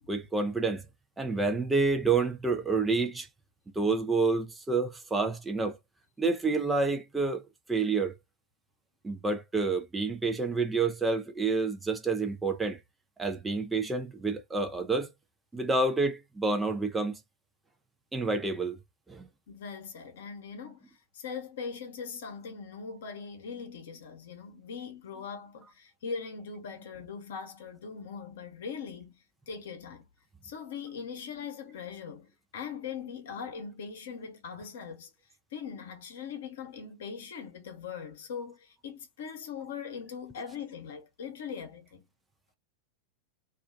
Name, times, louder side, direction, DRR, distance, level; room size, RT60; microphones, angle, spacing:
voice 1, 0.1-0.8 1.2-3.3 3.8-5.8 6.2-8.1 9.0-12.8 13.2-15.1 15.5-17.2 18.1-18.8 19.1-19.3, right 3 dB, 10° right, 0.5 m, -28 dB
voice 2, 19.5-30.1 30.4-35.1 35.5-42.1, left 6 dB, 60° left, 0.8 m, -41 dB
2.4 x 2.2 x 2.3 m
figure-of-eight pair, 90°, 0 cm